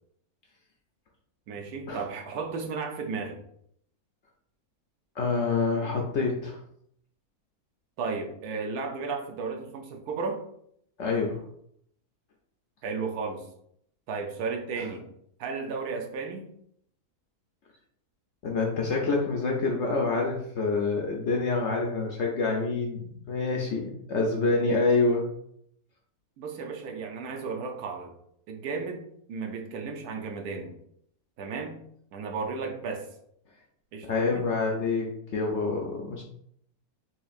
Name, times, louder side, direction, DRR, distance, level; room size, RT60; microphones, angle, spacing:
voice 1, 1.5-3.4 8.0-10.4 12.8-13.4 14.1-15.1 15.4-16.5 26.4-28.1 28.5-30.7 31.4-31.8 32.1-33.1 33.9-34.5, right 4 dB, 80° right, 3 dB, 1.2 m, -34 dB
voice 2, 5.2-6.6 11.0-11.4 14.8-14.9 18.4-25.3 34.1-36.2, left 3 dB, 65° left, 0 dB, 0.7 m, -27 dB
4.3 x 3.1 x 2.4 m, 0.70 s
omnidirectional pair, 1.7 m